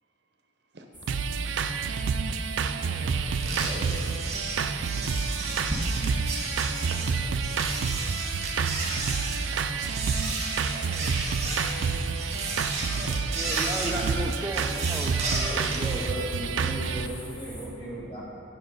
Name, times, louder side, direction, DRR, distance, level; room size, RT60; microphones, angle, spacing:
sound 1, 0.9-17.7, equal, 10° left, 1.7 m, -43 dB
sound 2, 1.1-17.1, right 5 dB, 80° right, 0.4 m, -29 dB
voice 1, 2.6-3.1 6.9-7.2 9.5-9.7, right 3 dB, 65° right, 4 dB, 0.8 m, -48 dB
sound 3, 3.4-15.9, right 2 dB, 35° right, 1.5 m, -33 dB
voice 2, 13.4-16.0, right 1 dB, 15° right, -2 dB, 0.4 m, -34 dB
voice 3, 15.9-18.2, right 1 dB, 25° left, -7 dB, 2.1 m, -36 dB
9.8 x 6.1 x 5.3 m, 2.8 s
head